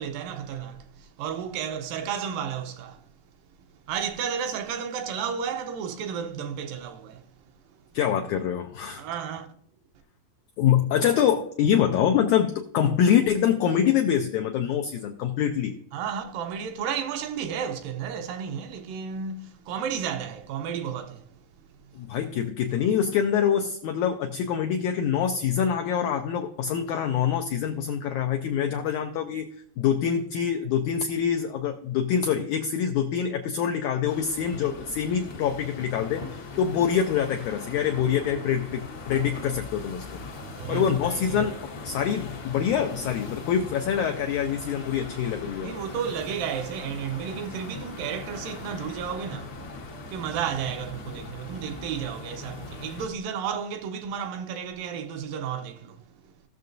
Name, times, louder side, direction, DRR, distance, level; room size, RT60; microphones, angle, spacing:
voice 1, 0.0-3.1 3.9-7.3 7.7-7.8 9.0-9.5 15.9-21.3 40.6-41.5 45.6-49.6 50.1-56.3, right 7 dB, 80° right, 2.3 m, -32 dB
voice 2, 7.9-9.0 10.6-15.7 21.9-40.2 40.7-45.7, left 8 dB, 85° left, 1.7 m, -25 dB
sound 1, 34.0-53.1, left 3 dB, 70° left, 1.1 m, -40 dB
17.0 x 6.6 x 2.6 m
omnidirectional pair, 4.1 m